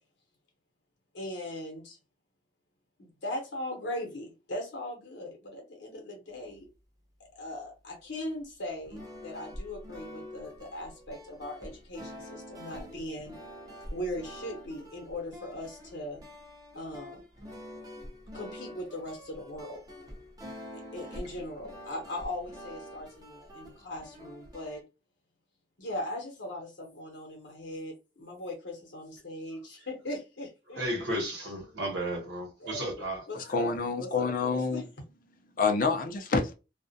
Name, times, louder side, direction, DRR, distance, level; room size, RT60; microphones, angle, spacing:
voice 1, 1.1-2.0 3.0-6.7 7.2-13.3 13.9-16.2 16.7-17.2 18.3-19.8 20.7-24.8 25.8-31.2 32.6-34.8, left 1 dB, 75° left, 0.8 m, -39 dB
sound 1, 8.8-24.8, equal, 20° right, 0.6 m, -46 dB
voice 2, 30.7-33.2, right 1 dB, 75° right, 1.0 m, -33 dB
voice 3, 33.3-34.8 35.6-36.5, left 4 dB, 50° left, 0.5 m, -28 dB
2.3 x 2.1 x 2.6 m
head